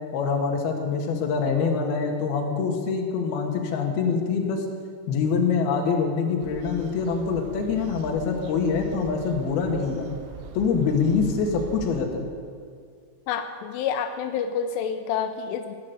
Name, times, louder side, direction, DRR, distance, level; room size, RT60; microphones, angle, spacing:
voice 1, 0.1-4.7 5.1-10.1 10.5-12.3, left 5 dB, 60° left, 2 dB, 3.3 m, -25 dB
sound 1, 6.4-12.0, right 6 dB, 80° right, 3.4 m, -41 dB
voice 2, 13.3-15.8, left 7 dB, 85° left, 7 dB, 3.3 m, -28 dB
17.5 x 9.8 x 8.1 m, 2.2 s
omnidirectional pair, 5.7 m